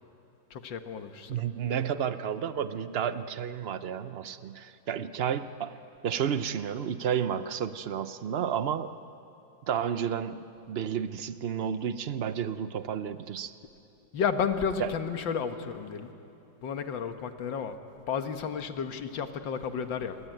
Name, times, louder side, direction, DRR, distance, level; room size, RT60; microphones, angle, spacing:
voice 1, 0.5-1.4 14.1-16.1 16.6-17.8 18.1-20.3, left 6 dB, 80° left, 8 dB, 2.0 m, -32 dB
voice 2, 1.3-5.8 6.0-8.9 9.7-13.5 14.8-14.9, right 8 dB, 75° right, 12 dB, 0.5 m, -31 dB
27.5 x 22.0 x 9.1 m, 2.9 s
omnidirectional pair, 2.0 m